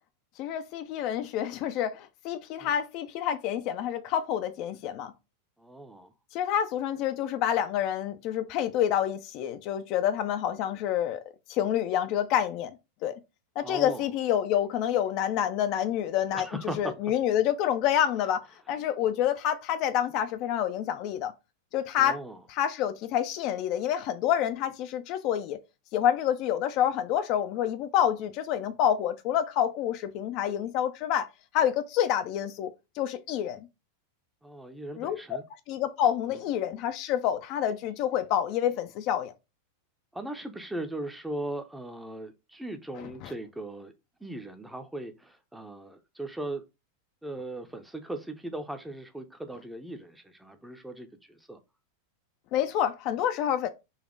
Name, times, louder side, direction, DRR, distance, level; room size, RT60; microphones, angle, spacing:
voice 1, 0.4-5.1 6.3-11.2 11.5-12.8 13.0-13.2 13.6-16.5 16.8-21.3 21.7-22.2 22.5-25.6 25.9-31.3 31.5-33.7 35.0-35.4 35.7-39.3 43.0-43.3 52.5-53.7, left 10 dB, 40° left, 0.4 m, -28 dB
voice 2, 5.6-6.1 13.6-14.1 16.3-16.9 22.0-22.4 34.4-35.4 36.3-36.4 40.1-43.9 44.2-46.6 47.2-51.6, right 1 dB, 5° right, 0.6 m, -38 dB
4.0 x 2.8 x 3.7 m
figure-of-eight pair, 90°, 0 cm